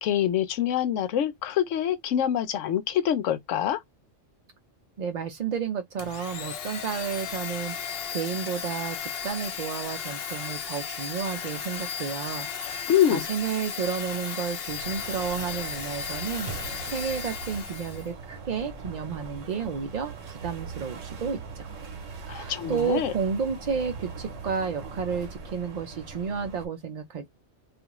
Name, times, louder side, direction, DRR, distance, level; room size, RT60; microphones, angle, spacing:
voice 1, 0.0-3.8 12.9-13.3 22.3-23.1, left 10 dB, 85° left, 1.0 m, -25 dB
voice 2, 5.0-7.7 8.1-21.7 22.2-27.3, right 6 dB, 65° right, 0.4 m, -32 dB
Domestic sounds home sounds, 6.0-18.1, left 7 dB, 60° left, 0.7 m, -35 dB
sound 1, 14.7-26.7, right 4 dB, 90° right, 1.1 m, -40 dB
2.4 x 2.4 x 2.9 m
omnidirectional pair, 1.3 m